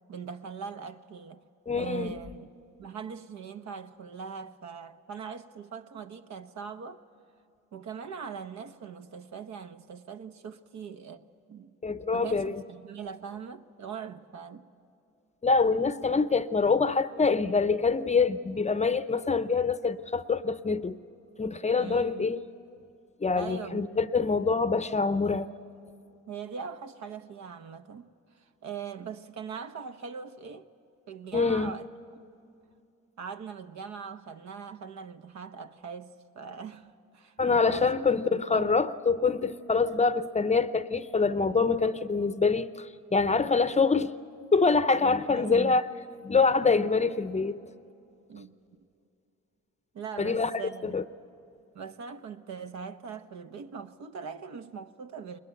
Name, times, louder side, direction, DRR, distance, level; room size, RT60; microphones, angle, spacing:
voice 1, 0.1-1.4 1.7-2.5 2.8-7.0 7.7-11.8 12.1-14.7 21.8-22.3 23.4-24.0 26.3-28.1 28.3-30.7 31.1-31.9 33.2-37.9 38.3-38.8 45.3-45.8 48.3-48.6 49.9-51.0 51.7-55.4, right 6 dB, 65° right, 1.0 m, -41 dB
voice 2, 1.7-2.1 11.8-12.6 15.4-21.0 21.4-22.4 23.2-25.5 31.3-31.7 37.4-44.1 44.5-45.8 46.2-47.6 50.2-50.5 50.8-51.0, left 4 dB, 20° left, 0.7 m, -25 dB
21.0 x 21.0 x 9.1 m
cardioid pair, 90°, 30 cm